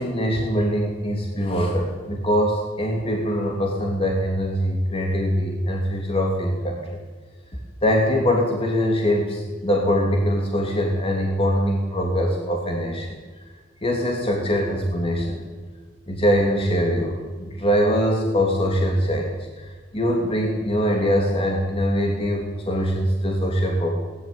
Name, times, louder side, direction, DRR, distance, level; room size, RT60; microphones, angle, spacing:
voice 1, 0.0-6.8 7.8-13.2 13.8-15.4 16.1-23.9, equal, 30° left, 0 dB, 2.9 m, -23 dB
20.5 x 14.5 x 9.6 m, 1.4 s
head